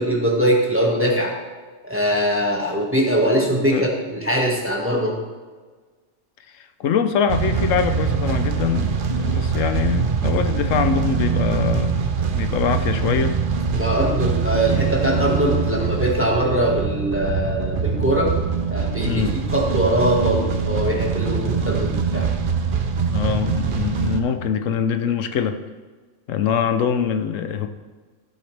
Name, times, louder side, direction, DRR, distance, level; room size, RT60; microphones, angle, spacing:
voice 1, 0.0-1.3 1.9-5.1 13.7-18.3 18.7-19.2 19.5-22.3, right 1 dB, 10° right, -2 dB, 1.6 m, -21 dB
voice 2, 3.5-3.9 6.5-12.0 12.3-13.4 19.0-19.4 23.1-25.6 26.3-27.7, left 7 dB, 80° left, 8 dB, 1.0 m, -23 dB
sound 1, 7.3-24.2, right 5 dB, 50° right, 0.8 m, -23 dB
15.0 x 7.8 x 3.3 m, 1.4 s
omnidirectional pair, 1.3 m